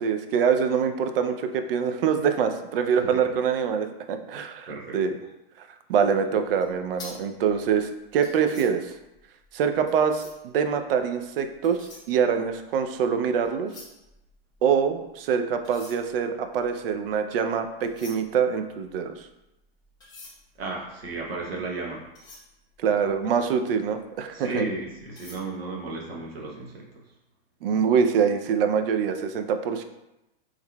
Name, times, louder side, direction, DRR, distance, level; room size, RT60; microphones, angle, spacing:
voice 1, 0.0-5.1 5.6-8.9 9.5-13.7 14.6-19.3 22.8-24.6 27.6-29.8, right 7 dB, 70° right, 7 dB, 0.5 m, -25 dB
voice 2, 4.7-5.0 20.6-22.1 24.3-26.9, right 3 dB, 85° right, -2 dB, 0.9 m, -34 dB
sound 1, 6.6-10.6 11.4-13.0 13.3-15.1 15.5-23.5 24.0-24.2 24.6-25.4, left 2 dB, 15° left, 0.9 m, -49 dB
3.7 x 3.1 x 2.2 m, 0.93 s
hypercardioid pair, 140°, 30 cm